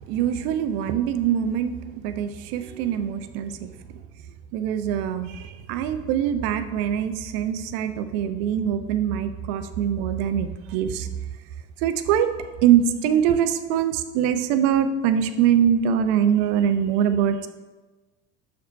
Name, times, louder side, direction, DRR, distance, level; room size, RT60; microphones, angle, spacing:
voice 1, 0.1-1.7 2.0-3.7 4.5-11.1 11.8-12.3 12.6-17.5, right 9 dB, 50° right, 10 dB, 0.7 m, -23 dB
6.0 x 5.2 x 5.2 m, 1.2 s
figure-of-eight pair, 65°, 46 cm